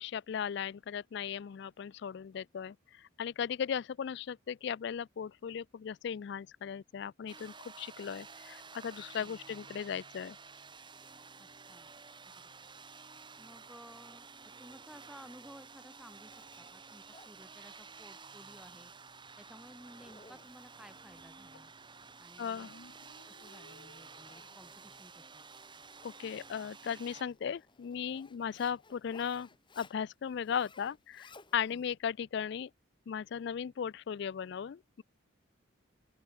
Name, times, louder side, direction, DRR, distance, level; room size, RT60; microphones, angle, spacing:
voice 1, 0.0-10.4 22.4-22.7 26.0-29.5 29.8-32.7 33.1-35.0, left 7 dB, 60° left, 0.3 m, -37 dB
sound 1, 7.3-27.2, right 5 dB, 25° right, 3.0 m, -52 dB
voice 2, 11.4-11.9 12.2-12.5 13.4-14.3 14.6-18.9 19.4-21.7 22.2-22.7 23.3-25.4 31.7-31.8, equal, 5° right, 2.9 m, -56 dB
Zipper (clothing), 15.8-31.9, left 3 dB, 25° left, 1.9 m, -61 dB
sound 2, 22.6-24.6, left 2 dB, 80° left, 2.6 m, -59 dB
open air
head